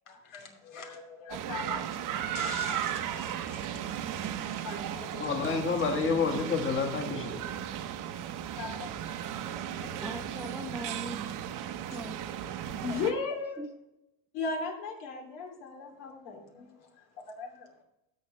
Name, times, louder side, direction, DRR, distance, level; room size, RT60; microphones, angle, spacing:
voice 1, 0.1-4.1 4.5-5.6 5.9-6.0 8.6-9.4 9.7-9.9 12.8-13.6 14.3-16.9 17.4-17.7, left 4 dB, 75° left, 1 dB, 2.9 m, -38 dB
sound 1, 1.3-13.1, right 10 dB, 50° right, 0.9 m, -36 dB
voice 2, 5.2-7.4, left 5 dB, 30° left, 3 dB, 1.8 m, -29 dB
voice 3, 10.0-11.2 11.8-12.2 13.6-13.7, right 1 dB, 5° right, 7 dB, 0.5 m, -40 dB
12.5 x 7.5 x 3.3 m, 0.87 s
supercardioid pair, 110°, 42 cm